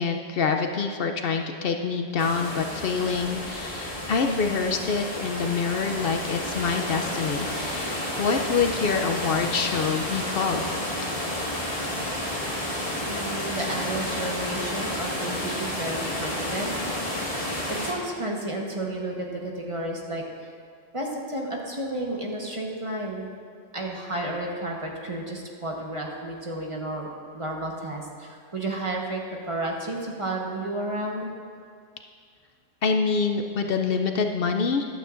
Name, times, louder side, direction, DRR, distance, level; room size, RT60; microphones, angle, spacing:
voice 1, 0.0-10.6 32.8-34.9, left 5 dB, 65° left, 5 dB, 0.7 m, -26 dB
sound 1, 2.2-17.9, left 1 dB, 35° left, 1.8 m, -31 dB
voice 2, 13.0-16.7 17.2-20.2 20.9-23.3 23.7-27.1 27.3-29.2 29.5-31.3, right 1 dB, 30° right, -1 dB, 1.2 m, -32 dB
14.5 x 11.5 x 2.5 m, 2.2 s
omnidirectional pair, 1.1 m